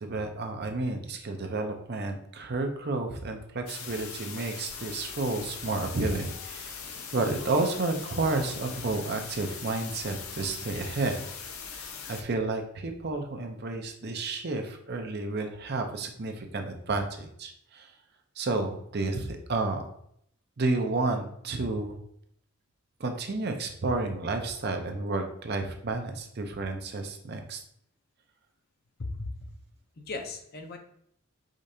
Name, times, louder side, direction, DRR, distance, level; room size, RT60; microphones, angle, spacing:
voice 1, 0.0-6.8 7.1-11.2 11.7-17.9 18.4-19.8 20.6-22.0 23.0-27.6, right 3 dB, 50° right, 5 dB, 0.6 m, -31 dB
sound 1, 3.7-12.2, left 6 dB, 80° left, 0.7 m, -41 dB
voice 2, 29.0-29.5 30.0-30.8, left 2 dB, 45° left, 4 dB, 0.6 m, -37 dB
5.1 x 3.7 x 2.7 m, 0.70 s
head